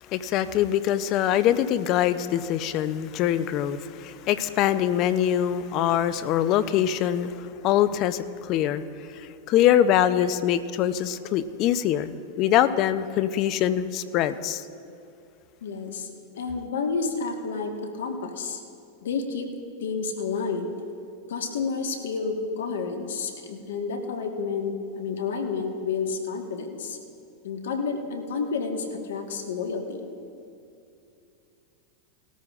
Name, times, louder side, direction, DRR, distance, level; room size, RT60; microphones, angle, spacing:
voice 1, 0.1-8.8 9.2-12.1 12.4-14.6, left 11 dB, 45° left, 13 dB, 0.6 m, -23 dB
voice 2, 15.6-16.1 16.3-18.6 19.0-19.5 19.8-20.7 21.3-27.0 27.4-30.1, left 5 dB, 75° left, 4 dB, 1.5 m, -30 dB
18.5 x 13.5 x 2.5 m, 2.5 s
hypercardioid pair, 100°, 0 cm